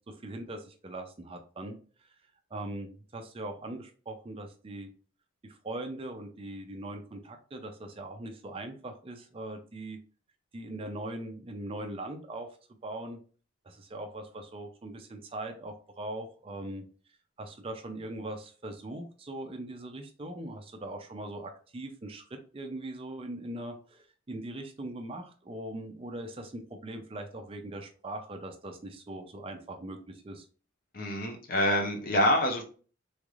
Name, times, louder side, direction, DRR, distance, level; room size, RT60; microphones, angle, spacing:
voice 1, 0.1-1.8 2.5-4.9 5.4-10.0 10.5-12.5 12.8-13.2 13.6-16.8 17.4-30.5, right 1 dB, 25° right, 5 dB, 0.4 m, -40 dB
voice 2, 30.9-32.6, left 1 dB, 45° left, 4 dB, 0.7 m, -26 dB
3.5 x 3.2 x 2.4 m, 0.39 s
head